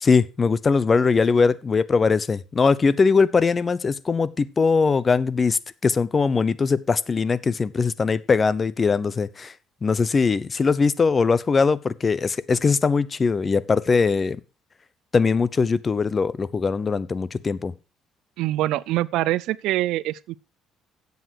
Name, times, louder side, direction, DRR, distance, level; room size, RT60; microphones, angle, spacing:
voice 1, 0.0-9.5 9.8-14.4 15.1-17.7, left 5 dB, 30° left, 0.8 m, -21 dB
voice 2, 18.4-20.4, right 15 dB, 80° right, 0.5 m, -24 dB
12.5 x 8.2 x 4.6 m
cardioid pair, 100°, 0 cm